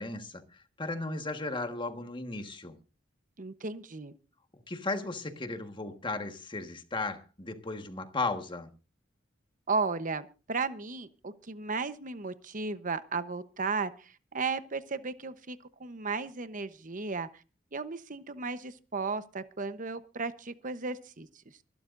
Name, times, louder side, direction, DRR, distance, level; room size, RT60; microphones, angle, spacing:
voice 1, 0.0-2.8 4.7-8.7, left 3 dB, 25° left, 1.6 m, -35 dB
voice 2, 3.4-4.1 9.7-17.4 17.7-21.3, right 4 dB, 45° right, 1.0 m, -35 dB
25.0 x 12.0 x 2.6 m
head